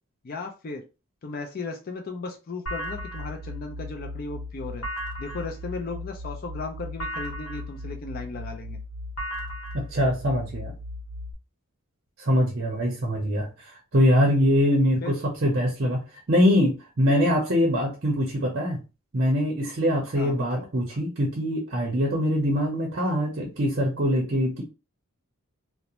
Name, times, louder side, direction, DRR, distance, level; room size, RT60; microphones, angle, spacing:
voice 1, 0.2-0.8 1.2-4.8 5.2-8.8 15.0-15.2 20.1-20.7, left 3 dB, 45° left, 3 dB, 0.4 m, -36 dB
sound 1, 2.7-11.3, left 1 dB, 70° left, 0.9 m, -36 dB
voice 2, 9.7-10.7 12.2-18.8 19.1-24.6, equal, 50° right, 1 dB, 0.7 m, -23 dB
2.5 x 2.1 x 2.9 m, 0.30 s
head